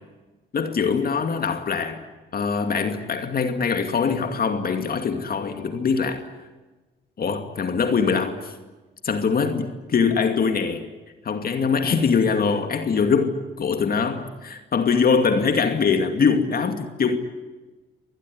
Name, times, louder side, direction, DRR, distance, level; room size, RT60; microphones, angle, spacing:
voice 1, 0.5-2.0 2.3-6.3 7.2-8.5 9.0-10.9 11.2-17.2, left 5 dB, 50° left, 2.5 m, -23 dB
26.0 x 20.0 x 9.7 m
cardioid pair, 90°, 20 cm